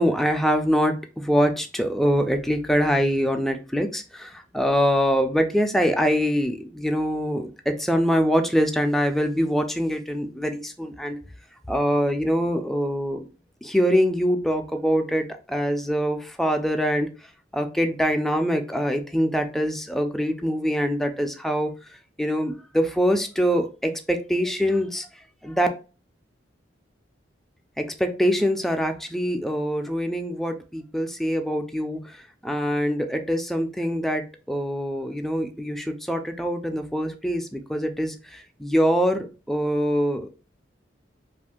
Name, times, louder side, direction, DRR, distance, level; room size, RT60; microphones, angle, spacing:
voice 1, 0.0-11.2 11.7-13.3 13.6-17.1 17.5-21.7 22.2-25.1 25.4-25.7 27.8-32.2 32.4-40.3, equal, ahead, 5 dB, 0.3 m, -24 dB
2.5 x 2.4 x 3.6 m, 0.34 s
head